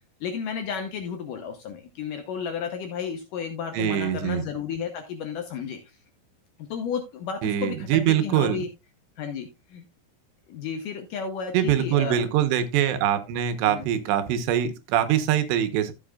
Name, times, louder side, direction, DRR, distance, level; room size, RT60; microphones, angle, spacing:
voice 1, 0.2-6.0 6.6-8.7 9.2-9.9 10.5-12.3 13.7-13.9, left 6 dB, 75° left, 6 dB, 2.0 m, -33 dB
voice 2, 3.7-4.4 7.4-8.6 11.5-15.9, right 10 dB, 85° right, 9 dB, 3.2 m, -23 dB
14.0 x 7.7 x 2.3 m, 0.25 s
omnidirectional pair, 4.8 m